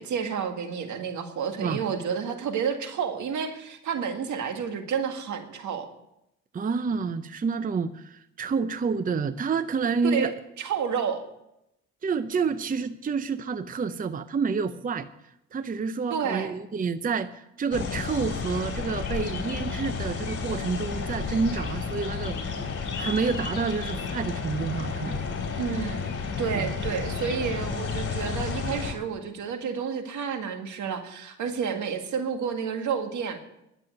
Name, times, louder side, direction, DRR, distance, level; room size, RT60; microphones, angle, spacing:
voice 1, 0.0-5.9 10.0-10.3 10.6-11.2 16.1-16.5 25.6-26.1 26.4-33.4, right 7 dB, 75° right, 6 dB, 1.9 m, -30 dB
voice 2, 6.5-10.3 12.0-15.1 15.5-25.2 26.5-26.7, right 5 dB, 30° right, 12 dB, 0.6 m, -29 dB
sound 1, 17.7-28.9, left 5 dB, 50° left, 3.1 m, -32 dB
11.5 x 7.5 x 9.2 m, 0.84 s
cardioid pair, 90°, 30 cm